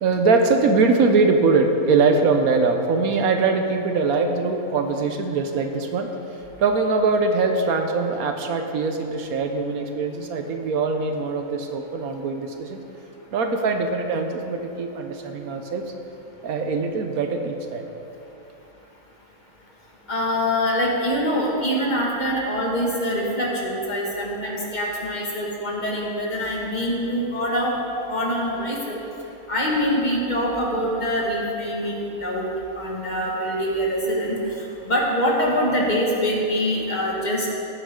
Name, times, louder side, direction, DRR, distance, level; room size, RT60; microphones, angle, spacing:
voice 1, 0.0-6.1 6.6-12.8 13.3-15.8 16.4-17.9, right 4 dB, 75° right, 5 dB, 1.3 m, -22 dB
voice 2, 20.1-27.7 28.1-29.0 29.5-32.5 32.8-34.4 34.9-37.5, equal, 30° left, -3 dB, 2.1 m, -24 dB
17.0 x 9.6 x 3.8 m, 2.9 s
omnidirectional pair, 1.5 m